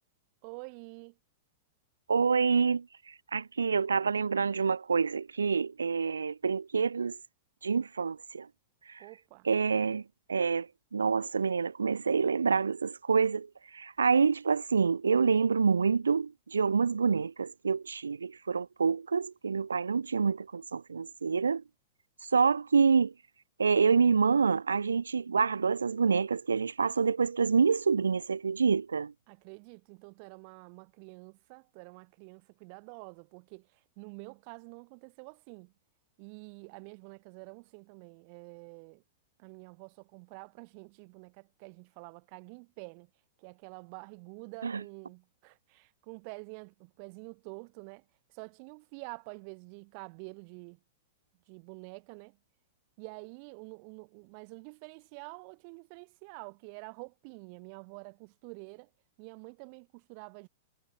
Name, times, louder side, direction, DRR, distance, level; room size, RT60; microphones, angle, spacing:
voice 1, 0.4-1.2 9.0-9.5 29.3-35.7 36.2-39.0 39.4-43.1 43.4-48.0 48.3-50.8 51.5-52.4 53.0-58.9 59.2-60.5, right 39 dB, 50° right, 6.1 m, -48 dB
voice 2, 2.1-2.9 3.3-7.2 7.6-8.5 8.9-9.0 9.5-10.0 10.3-21.6 22.3-23.1 23.6-29.1 44.6-44.8, right 5 dB, 85° right, 0.3 m, -27 dB
hypercardioid pair, 100°, 0 cm